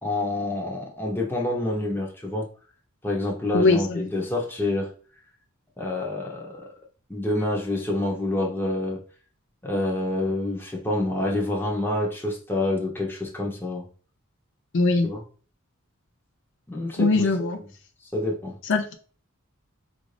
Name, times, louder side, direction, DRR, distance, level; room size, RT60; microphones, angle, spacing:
voice 1, 0.0-2.5 3.0-4.9 5.8-6.7 7.1-9.0 9.6-13.8 15.0-15.2 16.7-17.5 18.1-18.6, left 2 dB, 10° left, 0.9 m, -27 dB
voice 2, 3.5-4.0 14.7-15.1 17.0-17.6 18.6-19.0, left 3 dB, 60° left, 0.5 m, -21 dB
4.9 x 2.6 x 3.2 m
head